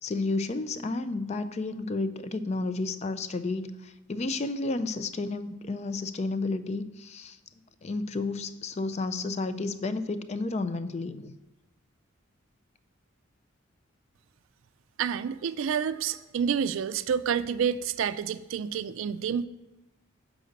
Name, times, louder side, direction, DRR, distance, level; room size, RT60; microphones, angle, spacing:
voice 1, 0.0-7.4 7.8-11.3, left 3 dB, 30° left, 12 dB, 0.3 m, -31 dB
voice 2, 15.0-19.5, right 7 dB, 75° right, 13 dB, 0.3 m, -29 dB
6.4 x 4.8 x 6.5 m, 0.97 s
head